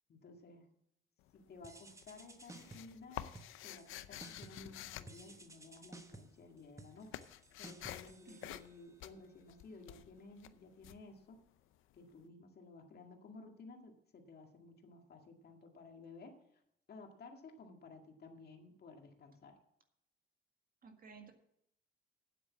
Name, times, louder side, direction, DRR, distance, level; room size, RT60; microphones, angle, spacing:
voice 1, 0.1-0.7 1.3-3.3 3.6-7.1 7.6-11.4 11.9-16.6 16.9-19.6, left 3 dB, 55° left, 3 dB, 2.0 m, -55 dB
sound 1, 1.2-1.7 2.0-6.1 6.3-11.9, left 13 dB, 90° left, 0.6 m, -49 dB
sound 2, 1.6-3.0 3.3-3.9 4.2-4.7 5.1-9.1, right 2 dB, 15° right, 1.0 m, -56 dB
voice 2, 20.8-21.3, right 5 dB, 45° right, 5 dB, 1.9 m, -55 dB
9.4 x 7.9 x 7.3 m, 0.75 s
cardioid pair, 90°, 20 cm